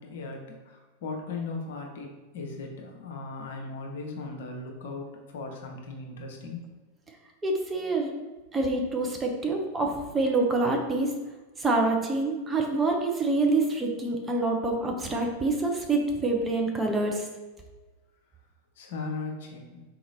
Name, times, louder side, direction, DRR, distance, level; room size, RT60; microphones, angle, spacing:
voice 1, 0.0-6.7 18.8-19.8, left 3 dB, 55° left, 1 dB, 0.7 m, -38 dB
voice 2, 7.4-8.1 8.5-11.1 11.6-17.3, right 2 dB, 15° right, 2 dB, 0.7 m, -26 dB
3.9 x 2.9 x 4.0 m, 1.2 s
figure-of-eight pair, 90°, 0 cm